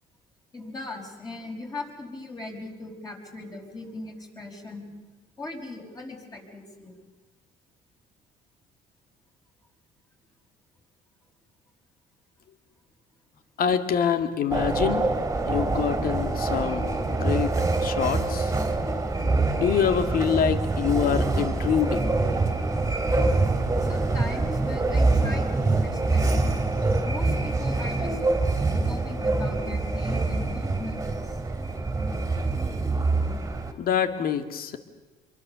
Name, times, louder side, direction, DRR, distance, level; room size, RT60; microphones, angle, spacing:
voice 1, 0.5-4.9 5.4-7.0 23.8-26.7 27.1-28.2 28.8-31.4, left 2 dB, 20° left, 1 dB, 5.4 m, -39 dB
voice 2, 13.6-15.1 15.5-18.5 19.6-22.2 33.8-34.8, left 8 dB, 60° left, 8 dB, 2.0 m, -26 dB
sound 1, 14.5-33.7, right 3 dB, 15° right, 2.8 m, -25 dB
26.5 x 23.0 x 6.9 m, 1.2 s
cardioid pair, 110°, 17 cm